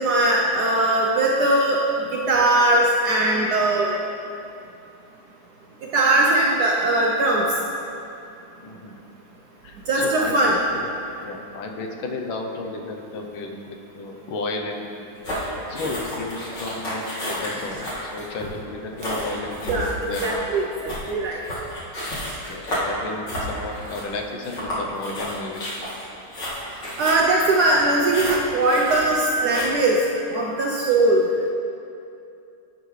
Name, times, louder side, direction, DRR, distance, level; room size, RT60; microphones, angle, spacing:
voice 1, 0.0-1.8 2.1-4.0 5.9-7.5 9.9-10.6 19.7-19.9 20.2-21.4 27.0-30.0 30.3-31.2, right 2 dB, 75° right, -2 dB, 0.9 m, -20 dB
voice 2, 8.6-9.0 9.6-10.9 11.2-14.8 15.7-20.3 21.0-21.1 22.5-25.6 30.4-30.6, left 3 dB, 75° left, 2 dB, 1.5 m, -33 dB
sound 1, 15.2-29.7, equal, 60° left, 2.7 m, -31 dB
11.0 x 6.4 x 3.2 m, 2.6 s
omnidirectional pair, 2.3 m